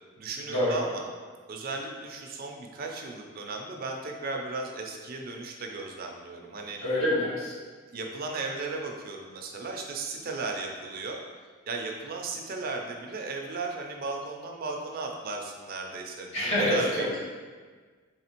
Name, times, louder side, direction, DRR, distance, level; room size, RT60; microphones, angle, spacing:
voice 1, 0.2-1.1 1.5-6.8 7.9-11.2 11.7-17.2, right 3 dB, 45° right, 1 dB, 0.5 m, -36 dB
voice 2, 6.8-7.5 16.3-17.1, left 1 dB, 80° left, -7 dB, 1.4 m, -26 dB
4.1 x 3.2 x 2.9 m, 1.5 s
head